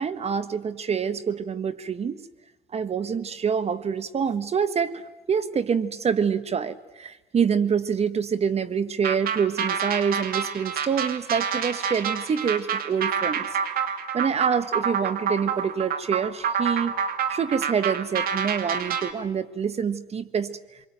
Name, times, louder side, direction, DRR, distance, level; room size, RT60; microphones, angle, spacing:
voice 1, 0.0-2.2 2.7-13.5 13.9-20.6, right 6 dB, 40° right, 14 dB, 1.4 m, -26 dB
sound 1, 9.0-19.1, right 7 dB, 60° right, 2.7 m, -28 dB
27.5 x 23.0 x 9.2 m, 1.1 s
cardioid pair, 110°, 17 cm